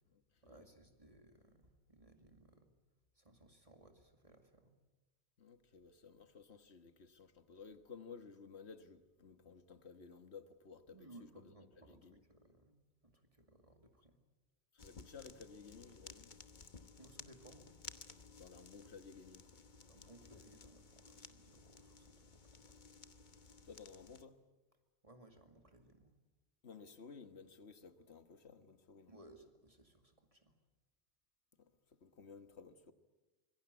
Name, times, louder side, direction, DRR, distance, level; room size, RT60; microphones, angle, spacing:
voice 1, 0.4-2.7 3.1-4.8 10.9-14.2 17.0-17.8 19.9-22.8 25.0-26.2 29.1-30.6, right 1 dB, 30° right, 2.3 m, -62 dB
voice 2, 5.4-11.5 11.8-12.2 14.7-16.3 18.4-19.5 23.4-24.4 26.6-29.1 31.6-32.9, left 5 dB, 75° left, 1.7 m, -56 dB
sound 1, 14.8-24.2, left 4 dB, 45° left, 1.2 m, -57 dB
26.0 x 21.5 x 8.2 m
omnidirectional pair, 1.1 m